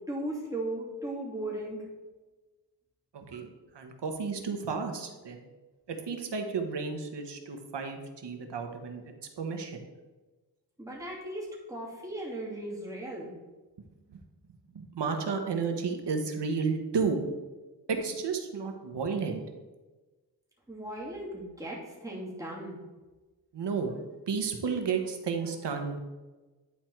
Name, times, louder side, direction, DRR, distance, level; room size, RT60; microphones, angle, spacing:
voice 1, 0.1-1.9 10.8-13.3 20.7-22.8, right 1 dB, 10° right, -5 dB, 2.7 m, -37 dB
voice 2, 3.1-3.5 3.7-5.4 5.9-9.9 14.1-14.2 14.7-17.2 17.9-19.4 23.5-23.9 24.3-26.0, right 5 dB, 75° right, 5 dB, 1.2 m, -32 dB
10.0 x 4.5 x 4.6 m, 1.2 s
wide cardioid pair, 100°, 42 cm